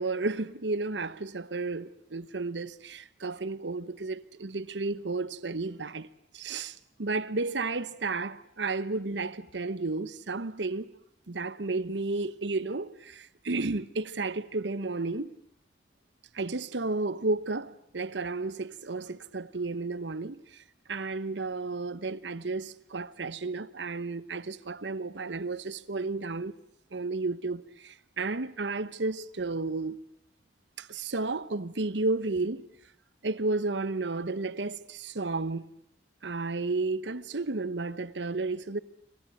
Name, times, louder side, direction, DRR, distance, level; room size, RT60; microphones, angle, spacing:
voice 1, 0.0-6.1 6.3-10.9 11.3-15.4 16.3-20.4 20.9-26.5 26.9-30.0 30.8-32.6 33.2-35.6 36.2-38.8, right 3 dB, 90° right, 1.0 m, -32 dB
27.5 x 26.0 x 7.8 m
head